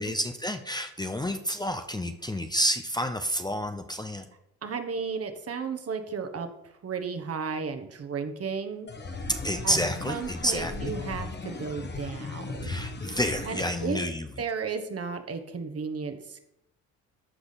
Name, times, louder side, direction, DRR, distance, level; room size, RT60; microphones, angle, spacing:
voice 1, 0.0-4.3 9.4-10.9 12.6-14.3, equal, 10° left, 7 dB, 0.8 m, -29 dB
voice 2, 4.6-8.9 9.6-9.8 10.1-12.8 13.4-14.0 14.4-16.4, right 5 dB, 40° right, 7 dB, 1.4 m, -34 dB
sound 1, 8.9-13.9, left 3 dB, 30° left, 1.4 m, -37 dB
14.0 x 5.0 x 4.1 m, 0.83 s
supercardioid pair, 65°, 36 cm